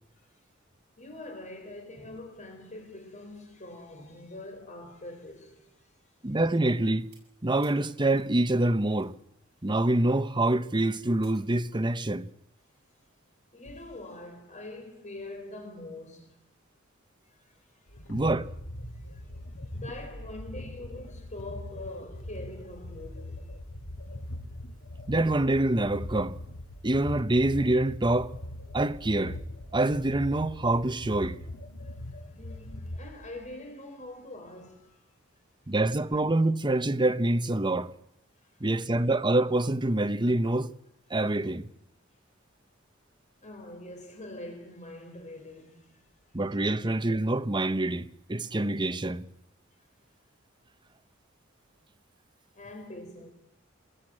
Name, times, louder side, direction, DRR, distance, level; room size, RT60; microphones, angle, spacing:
voice 1, 1.0-5.9 6.3-6.4 13.5-16.4 17.3-18.2 18.9-23.5 32.0-35.0 38.4-38.7 43.4-46.0 46.3-46.4 52.5-53.3, left 2 dB, 35° left, 3.9 m, -44 dB
voice 2, 6.2-7.1 7.4-9.1 9.6-12.3 18.1-18.5 25.1-26.4 26.8-28.3 28.7-29.4 29.7-31.4 35.7-37.9 38.6-40.7 41.1-41.7 46.3-49.3, right 2 dB, 20° right, 0.9 m, -26 dB
sound 1, 6.6-9.2 9.5-12.0, right 7 dB, 55° right, 8.0 m, -62 dB
sound 2, 17.9-33.5, left 1 dB, 70° left, 2.4 m, -41 dB
27.0 x 21.0 x 8.8 m
head